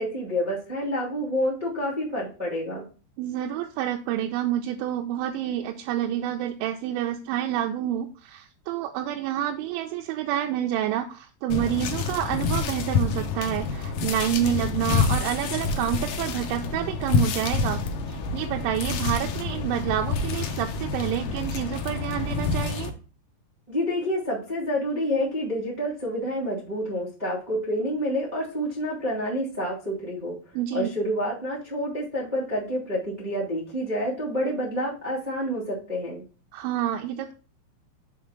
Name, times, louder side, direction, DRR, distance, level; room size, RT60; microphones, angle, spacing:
voice 1, 0.0-2.8 23.7-30.3 30.7-36.2, equal, 35° right, -5 dB, 0.6 m, -28 dB
voice 2, 3.2-17.8 18.1-22.9 30.6-30.9 36.5-37.3, right 11 dB, 85° right, 3 dB, 3.0 m, -28 dB
sound 1, 11.5-22.9, left 5 dB, 85° left, 1.9 m, -28 dB
7.0 x 3.6 x 6.3 m, 0.36 s
omnidirectional pair, 5.3 m